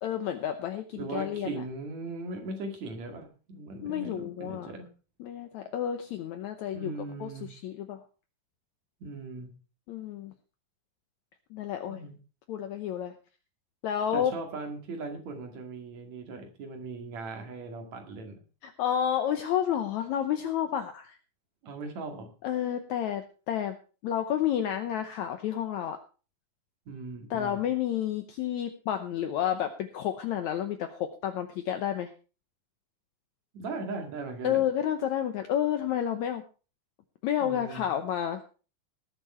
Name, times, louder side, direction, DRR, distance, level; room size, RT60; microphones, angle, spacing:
voice 1, 0.0-1.6 3.8-4.7 5.2-6.9 7.2-8.0 9.9-10.3 11.5-12.0 12.5-13.2 13.8-14.4 18.6-21.2 22.4-23.8 24.0-26.0 27.3-32.1 34.4-36.4 37.2-38.4, left 10 dB, 70° left, 7 dB, 2.0 m, -30 dB
voice 2, 1.0-4.9 6.7-7.5 9.0-9.6 11.9-12.2 14.1-18.4 21.6-22.3 26.9-27.6 33.5-34.6 37.4-37.8, right 3 dB, 55° right, 4 dB, 3.3 m, -39 dB
19.5 x 7.5 x 4.4 m, 0.36 s
omnidirectional pair, 3.9 m